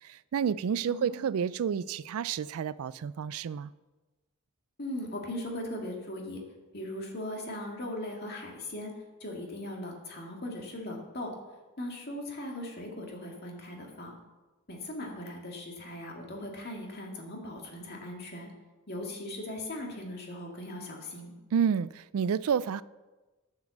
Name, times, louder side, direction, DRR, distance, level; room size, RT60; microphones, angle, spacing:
voice 1, 0.0-3.7 21.5-22.8, right 7 dB, 70° right, 18 dB, 0.3 m, -30 dB
voice 2, 0.9-1.2 4.8-6.4 6.7-8.9 9.2-11.3 11.8-14.2 14.7-18.5 18.9-21.3, left 1 dB, 45° left, 0 dB, 2.2 m, -39 dB
9.4 x 7.5 x 7.2 m, 1.2 s
head